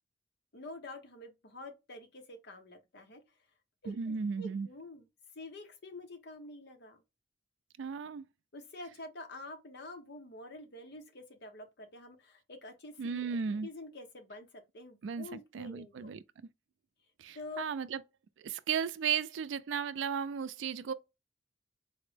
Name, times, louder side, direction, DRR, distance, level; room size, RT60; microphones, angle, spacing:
voice 1, 0.5-3.2 3.8-5.1 5.3-7.0 8.5-16.1 17.3-17.6, left 2 dB, 65° left, 0.9 m, -48 dB
voice 2, 3.9-4.7 7.8-8.2 13.0-13.7 15.0-16.2 17.2-18.0 18.4-20.9, right 6 dB, 80° right, 0.4 m, -35 dB
4.2 x 2.0 x 3.2 m
head